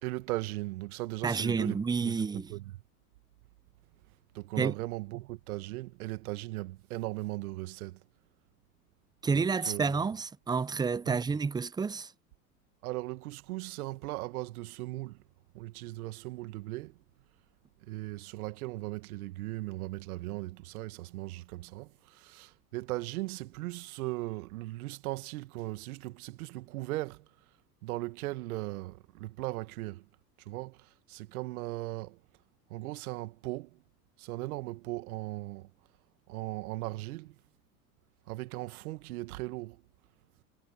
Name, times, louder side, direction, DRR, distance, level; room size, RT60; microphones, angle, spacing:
voice 1, 0.0-2.8 4.3-8.0 9.3-10.0 11.1-11.2 12.8-15.2 15.5-17.0 17.8-27.3 27.8-30.1 30.4-32.2 32.7-33.8 34.2-35.7 36.3-37.4 38.3-39.8, right 18 dB, 70° right, 1.9 m, -38 dB
voice 2, 1.2-2.5 4.6-4.7 9.2-12.1, right 5 dB, 10° right, 0.5 m, -29 dB
hypercardioid pair, 85°, 45 cm